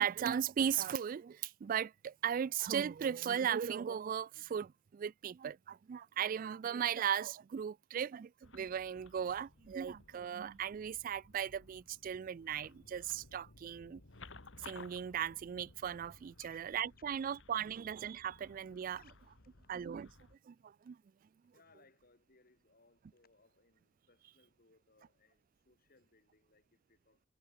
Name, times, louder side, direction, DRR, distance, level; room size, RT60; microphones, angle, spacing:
voice 1, 0.0-14.0 14.6-19.0 19.7-20.1 20.5-21.0, right 8 dB, 45° right, 0.3 m, -37 dB
sound 1, 8.4-20.4, left 3 dB, 80° left, 2.1 m, -58 dB
voice 2, 19.0-19.5 21.5-27.3, left 4 dB, 50° left, 2.9 m, -68 dB
head